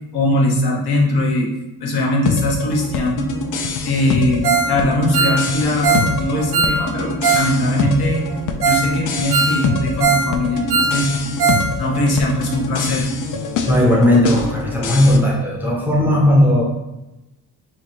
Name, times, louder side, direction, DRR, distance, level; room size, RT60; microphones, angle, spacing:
voice 1, 0.1-1.5 1.8-3.3 3.8-8.2 8.6-11.1 11.8-13.1, left 1 dB, 80° left, -1 dB, 1.0 m, -20 dB
sound 1, 2.2-15.2, left 4 dB, 55° left, 0.5 m, -25 dB
Ringtone, 4.4-4.7 5.0-7.5 7.8-7.9 8.3-8.4 8.6-8.9 9.2-10.3 10.6-11.7 11.9-12.0 12.5-12.6, right 4 dB, 85° right, 0.7 m, -19 dB
voice 2, 13.7-16.6, left 1 dB, 5° right, -4 dB, 0.6 m, -15 dB
3.1 x 2.5 x 4.3 m, 0.95 s
cardioid pair, 150°, 37 cm